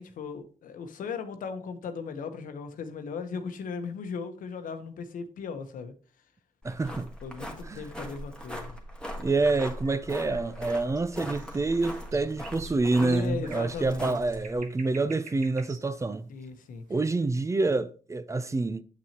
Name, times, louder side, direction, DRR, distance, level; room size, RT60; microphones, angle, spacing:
voice 1, 0.0-5.9 7.2-8.7 13.0-14.3 16.3-16.8, left 5 dB, 80° left, 1.0 m, -37 dB
sound 1, 6.6-14.6, equal, 5° left, 1.5 m, -40 dB
voice 2, 6.6-7.1 7.6-7.9 9.2-16.3 16.9-18.8, right 3 dB, 20° right, 0.5 m, -27 dB
sound 2, 9.2-17.4, right 5 dB, 65° right, 1.2 m, -50 dB
7.9 x 6.0 x 2.9 m
cardioid pair, 90°, 14 cm